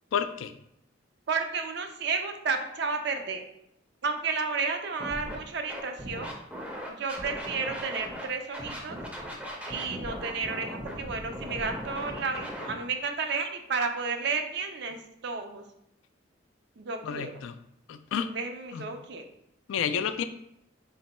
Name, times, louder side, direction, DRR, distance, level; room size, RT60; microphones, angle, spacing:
voice 1, 0.1-0.5 17.0-17.5 17.9-18.3 18.7-18.9 19.7-20.2, left 7 dB, 80° left, 11 dB, 0.3 m, -30 dB
voice 2, 1.3-3.4 4.0-6.4 6.9-9.0 9.7-15.0 15.2-15.6 16.8-17.5 18.3-19.2, right 4 dB, 60° right, 6 dB, 0.4 m, -32 dB
Scratching (performance technique), 5.0-5.4 5.7-8.2 8.5-12.7, equal, 5° right, 0.5 m, -38 dB
3.9 x 2.2 x 4.1 m, 0.76 s
head